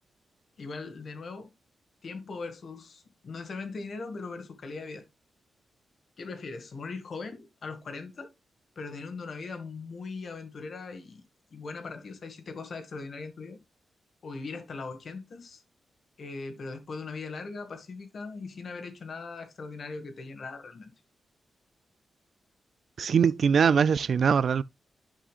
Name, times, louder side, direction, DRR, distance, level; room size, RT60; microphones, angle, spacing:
voice 1, 0.6-1.5 2.0-5.1 6.2-8.3 8.7-11.2 11.5-13.6 14.2-15.6 16.2-20.9, left 4 dB, 60° left, 1.7 m, -40 dB
voice 2, 23.0-24.6, right 6 dB, 65° right, 0.3 m, -22 dB
11.0 x 5.5 x 2.4 m
cardioid pair, 80°, 0 cm